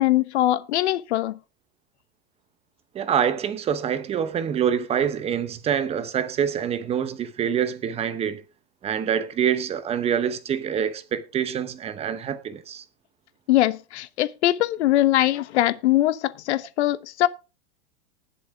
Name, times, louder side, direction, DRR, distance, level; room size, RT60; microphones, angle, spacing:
voice 1, 0.0-1.4 13.5-17.3, left 14 dB, 85° left, 1.0 m, -22 dB
voice 2, 2.9-8.4 8.8-12.8, right 8 dB, 20° right, 0.8 m, -26 dB
19.5 x 6.9 x 3.5 m
supercardioid pair, 160°, 33 cm